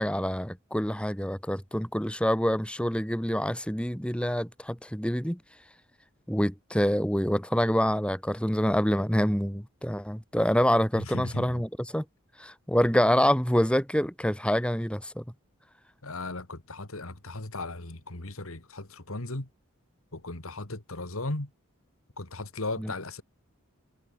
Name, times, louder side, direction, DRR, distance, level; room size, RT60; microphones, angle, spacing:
voice 1, 0.0-5.4 6.3-12.0 12.4-15.2 22.8-22.9, equal, 5° left, 5.5 m, -26 dB
voice 2, 10.9-11.6 16.0-19.5 20.1-21.5 22.2-23.2, left 2 dB, 70° left, 2.6 m, -36 dB
head